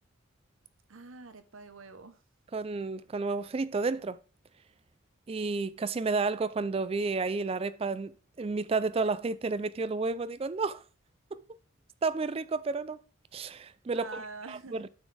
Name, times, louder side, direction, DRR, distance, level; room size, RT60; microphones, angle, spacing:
voice 1, 0.9-2.2 13.9-14.8, right 3 dB, 80° right, 0.9 m, -45 dB
voice 2, 2.5-4.2 5.3-10.8 11.3-11.4 12.0-13.0 13.3-14.2 14.5-14.9, right 4 dB, 30° right, 0.3 m, -31 dB
8.8 x 6.2 x 3.3 m
head